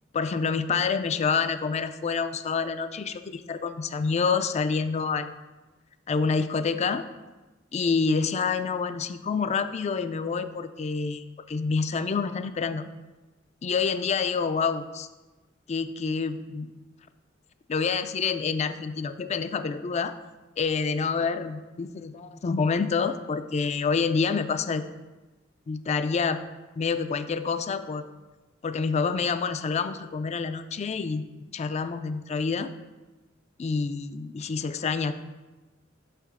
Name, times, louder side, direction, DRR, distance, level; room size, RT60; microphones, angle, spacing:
voice 1, 0.1-5.3 6.1-7.0 7.7-12.8 13.6-15.1 15.7-16.7 17.7-20.1 20.6-24.8 25.7-26.4 26.8-28.1 28.6-31.2 31.5-32.7 33.6-35.1, left 5 dB, 35° left, 11 dB, 0.3 m, -27 dB
6.1 x 5.7 x 4.7 m, 1.2 s
head